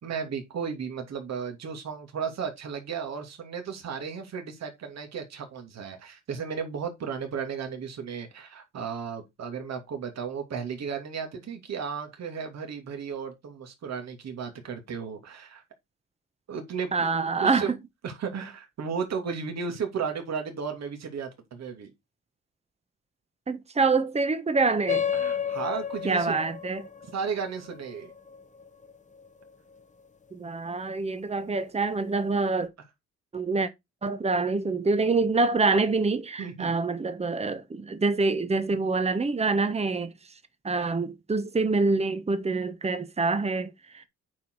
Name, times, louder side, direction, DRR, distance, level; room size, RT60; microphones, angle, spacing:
voice 1, 0.0-15.6 16.5-17.7 18.0-21.9 25.1-26.4 27.1-28.1 36.4-36.7, right 6 dB, 60° right, 2.7 m, -34 dB
voice 2, 16.9-17.8 23.5-25.0 26.0-26.9 30.3-32.7 33.3-33.7 34.0-40.1 40.6-44.0, right 3 dB, 20° right, 1.2 m, -26 dB
sound 1, 24.9-29.8, left 8 dB, 25° left, 1.0 m, -33 dB
9.1 x 4.8 x 4.6 m
cardioid pair, 90°, 30 cm